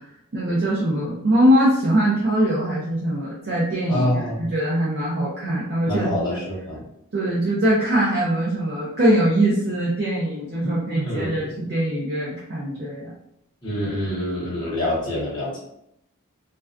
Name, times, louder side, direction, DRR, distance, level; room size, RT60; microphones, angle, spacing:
voice 1, 0.3-4.1 4.4-6.2 7.1-13.1, right 1 dB, 45° right, -6 dB, 0.5 m, -22 dB
voice 2, 3.9-4.4 5.9-6.8 10.6-11.4 13.6-15.6, left 1 dB, 20° left, -6 dB, 0.7 m, -26 dB
2.3 x 2.2 x 2.4 m, 0.77 s
head